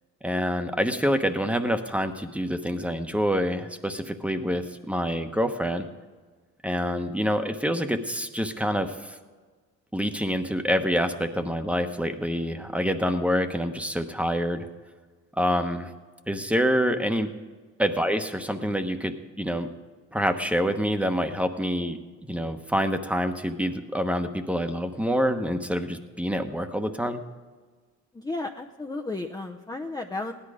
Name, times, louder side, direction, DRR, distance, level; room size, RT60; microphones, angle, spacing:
voice 1, 0.2-5.9 6.6-9.2 9.9-14.7 15.4-15.9 16.3-17.3 17.8-19.7 20.1-22.0 22.3-27.2, equal, 5° right, 7 dB, 1.0 m, -26 dB
voice 2, 28.1-30.3, left 2 dB, 15° left, 4 dB, 0.7 m, -33 dB
16.5 x 11.0 x 5.0 m, 1.4 s
cardioid pair, 90°, 30 cm